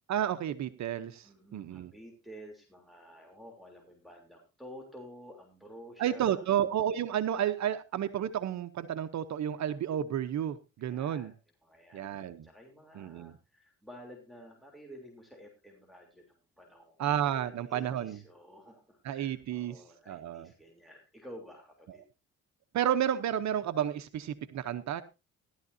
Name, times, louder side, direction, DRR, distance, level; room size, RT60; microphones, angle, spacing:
voice 1, 0.1-1.9 6.0-11.3 11.9-12.5 12.9-13.3 17.0-18.2 19.0-20.5 22.7-25.0, right 10 dB, 65° right, 10 dB, 0.9 m, -31 dB
voice 2, 1.2-6.5 10.8-11.3 11.6-12.2 12.4-16.9 17.3-22.0, equal, ahead, 0 dB, 3.3 m, -51 dB
16.0 x 12.0 x 2.7 m, 0.27 s
cardioid pair, 90°, 30 cm